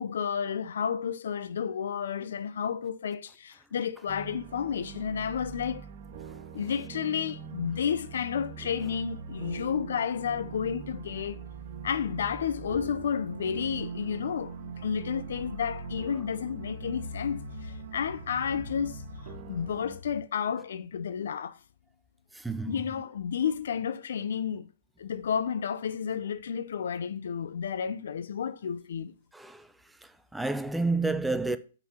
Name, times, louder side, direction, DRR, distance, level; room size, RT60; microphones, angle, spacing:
voice 1, 0.0-5.8 6.5-11.4 11.8-21.6 22.7-24.7 25.0-29.2, left 7 dB, 75° left, 0.5 m, -31 dB
sound 1, 4.1-20.0, right 7 dB, 60° right, 0.9 m, -42 dB
voice 2, 22.4-22.8 29.3-29.6 30.3-31.6, right 3 dB, 5° right, 0.5 m, -29 dB
5.6 x 4.0 x 5.6 m
hypercardioid pair, 125°, 0 cm